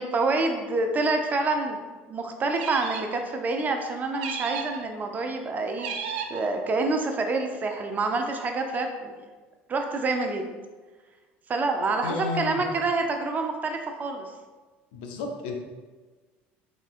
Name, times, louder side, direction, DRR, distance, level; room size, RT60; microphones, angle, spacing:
voice 1, 0.0-1.8 2.1-9.3 9.7-10.4 11.5-14.3, right 3 dB, 30° right, 4 dB, 0.5 m, -27 dB
sound 1, 2.5-3.2 4.2-4.8 5.8-6.5, right 6 dB, 90° right, 0.4 m, -34 dB
voice 2, 12.0-12.6 14.9-15.6, left 4 dB, 85° left, 3 dB, 0.5 m, -32 dB
3.7 x 3.5 x 2.4 m, 1.3 s
supercardioid pair, 95°, 5 cm